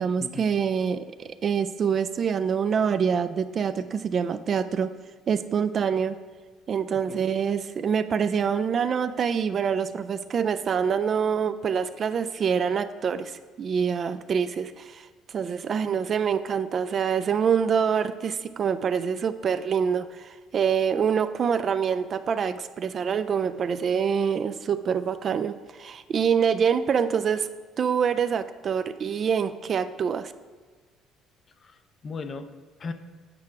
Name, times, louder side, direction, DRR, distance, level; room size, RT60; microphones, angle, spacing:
voice 1, 0.0-4.9 5.3-6.2 6.7-27.5 27.8-30.3, right 7 dB, 40° right, 12 dB, 0.3 m, -26 dB
voice 2, 31.6-32.9, left 4 dB, 35° left, 10 dB, 0.5 m, -38 dB
8.7 x 4.7 x 5.8 m, 1.5 s
cardioid pair, 135°, 0 cm